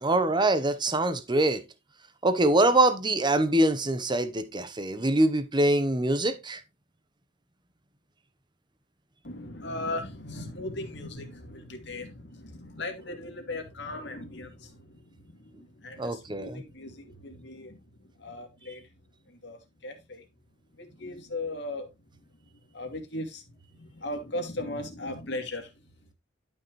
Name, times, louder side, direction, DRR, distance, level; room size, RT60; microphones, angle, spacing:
voice 1, 0.0-1.6 2.2-6.6 16.0-16.6, right 1 dB, 25° right, 1.0 m, -24 dB
voice 2, 9.2-17.8 18.2-18.8 19.3-20.2 20.8-21.9 22.7-23.4 23.7-25.7, left 2 dB, 65° left, 2.5 m, -38 dB
11.5 x 5.8 x 3.2 m
head